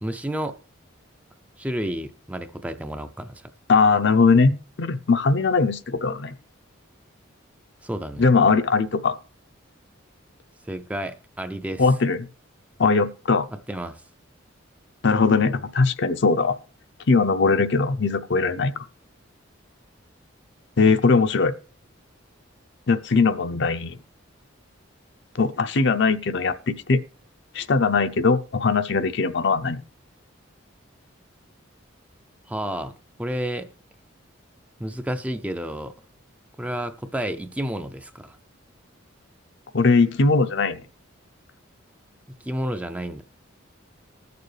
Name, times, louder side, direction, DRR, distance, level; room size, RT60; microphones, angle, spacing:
voice 1, 0.0-0.6 1.6-3.5 7.8-8.2 10.7-11.9 13.7-14.0 32.5-33.7 34.8-35.9 36.6-38.4 42.3-43.2, right 1 dB, 5° right, 0.4 m, -31 dB
voice 2, 3.7-6.3 8.2-9.1 11.8-12.3 12.8-13.5 15.0-16.6 17.1-18.8 20.8-21.5 22.9-24.0 25.4-27.0 27.5-29.8 39.7-40.8, left 4 dB, 60° left, 0.6 m, -20 dB
20.0 x 6.8 x 3.3 m
head